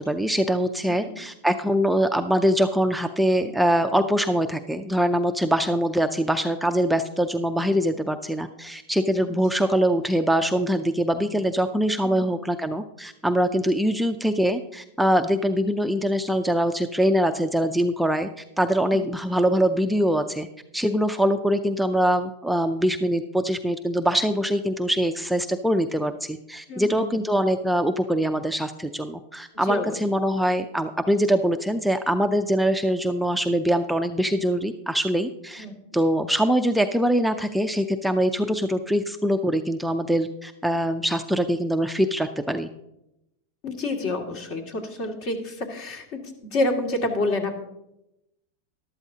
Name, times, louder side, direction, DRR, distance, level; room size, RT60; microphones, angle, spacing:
voice 1, 0.1-20.5 20.7-35.7 35.9-42.7, equal, ahead, 6 dB, 0.5 m, -23 dB
voice 2, 26.7-27.2 29.7-30.0 35.6-35.7 43.6-46.2 46.5-47.5, left 2 dB, 50° left, 3 dB, 2.2 m, -28 dB
13.0 x 12.0 x 2.8 m, 0.87 s
supercardioid pair, 125°, 0 cm